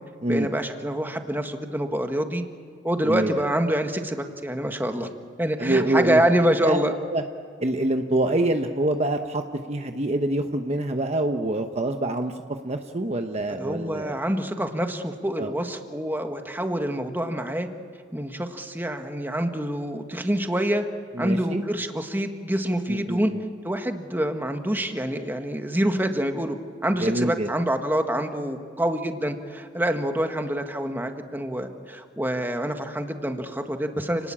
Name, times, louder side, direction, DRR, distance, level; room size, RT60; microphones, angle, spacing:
voice 1, 0.3-2.4 2.8-5.1 5.4-7.0 13.6-17.7 18.1-20.8 21.2-23.3 23.6-26.6 26.8-34.3, right 1 dB, 10° right, 5 dB, 1.6 m, -26 dB
voice 2, 3.0-3.5 5.6-6.2 6.6-6.8 7.1-7.2 7.6-9.4 9.7-12.3 12.6-14.2 15.4-15.5 21.2-21.6 22.9-23.4 27.0-27.5, right 1 dB, 35° right, 5 dB, 1.0 m, -25 dB
29.5 x 19.0 x 8.7 m, 2.2 s
head